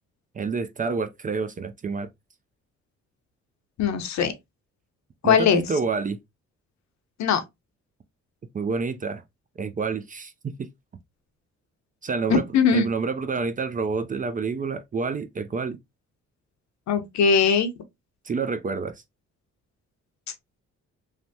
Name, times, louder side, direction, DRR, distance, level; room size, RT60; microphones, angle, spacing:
voice 1, 0.3-2.1 5.2-6.2 8.5-9.2 9.6-10.7 12.0-12.4 12.7-15.8 18.3-19.0, right 4 dB, 30° right, 0.4 m, -28 dB
voice 2, 3.8-4.3 5.2-5.6 7.2-7.4 12.3-12.9 16.9-17.7, left 6 dB, 65° left, 0.7 m, -20 dB
3.3 x 2.1 x 2.7 m
cardioid pair, 90°, 30 cm